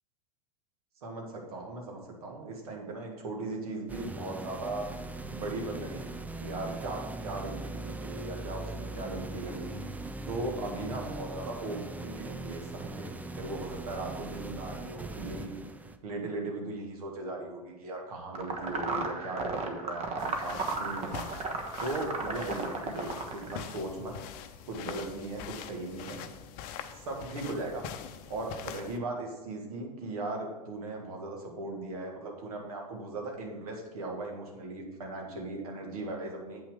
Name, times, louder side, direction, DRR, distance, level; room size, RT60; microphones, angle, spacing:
voice 1, 1.0-4.9 5.3-6.0 6.4-9.8 10.3-13.1 13.3-15.5 16.0-21.3 21.8-24.2 24.7-26.2 26.9-27.8 28.3-36.6, right 2 dB, 65° right, 1 dB, 1.9 m, -38 dB
sound 1, 3.9-16.0, right 2 dB, 10° right, 0.5 m, -40 dB
sound 2, 18.3-23.6, right 3 dB, 30° right, 1.2 m, -34 dB
sound 3, 20.2-29.0, left 9 dB, 45° left, 0.6 m, -44 dB
8.3 x 5.9 x 4.9 m, 1.1 s
figure-of-eight pair, 85°, 20 cm